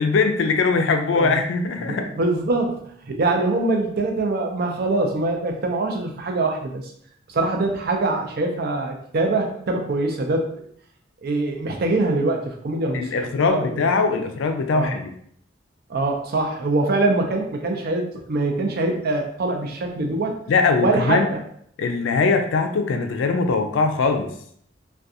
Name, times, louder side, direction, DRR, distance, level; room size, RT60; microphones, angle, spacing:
voice 1, 0.0-2.1 12.9-15.1 20.5-21.3 21.8-24.3, left 4 dB, 80° left, 6 dB, 0.4 m, -21 dB
voice 2, 1.9-6.8 7.3-10.5 11.2-13.6 14.7-15.0 15.9-20.4 20.8-21.4, right 2 dB, 55° right, 3 dB, 0.5 m, -23 dB
2.4 x 2.2 x 2.7 m, 0.65 s
head